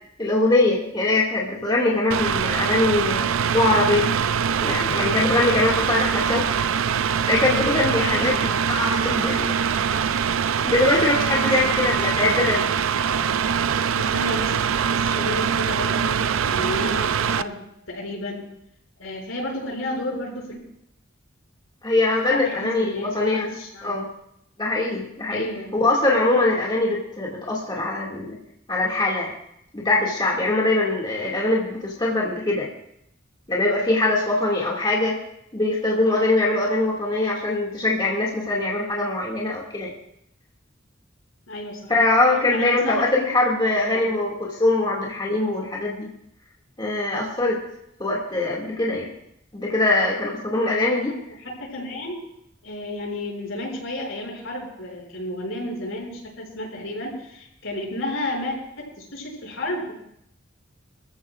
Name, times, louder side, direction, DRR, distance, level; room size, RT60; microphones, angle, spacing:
voice 1, 0.2-3.2 3.5-4.1 4.6-6.7 7.3-9.5 10.6-12.7 21.8-23.5 23.8-24.1 24.6-25.5 25.7-28.4 28.7-29.3 29.7-32.7 33.5-35.2 35.5-39.9 41.9-46.1 46.8-47.6 48.0-49.1 49.5-51.1, left 2 dB, 25° left, -3 dB, 2.2 m, -22 dB
Mechanical fan, 2.1-17.4, right 7 dB, 85° right, 0.5 m, -23 dB
voice 2, 8.0-8.4 11.4-12.0 14.0-14.5 15.0-17.6 17.9-18.5 19.0-20.6 22.3-23.9 25.3-25.7 34.5-34.7 41.5-41.9 42.5-43.4 43.8-44.0 51.4-52.2 52.6-59.9, left 1 dB, 80° left, -2 dB, 6.5 m, -32 dB
27.0 x 14.0 x 2.5 m, 0.77 s
head